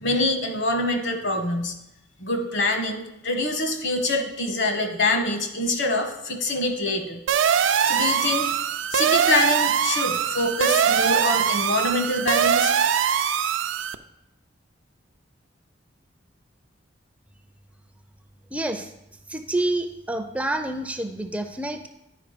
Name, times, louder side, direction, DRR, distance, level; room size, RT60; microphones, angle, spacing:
voice 1, 0.0-1.7 2.2-7.2 7.8-8.5 8.9-12.7, left 2 dB, 65° left, 5 dB, 1.2 m, -25 dB
sound 1, 7.3-13.9, right 8 dB, 75° right, 0.4 m, -22 dB
voice 2, 18.5-18.9 19.3-21.9, right 1 dB, 5° right, 7 dB, 0.4 m, -28 dB
9.9 x 4.7 x 5.0 m, 0.85 s
head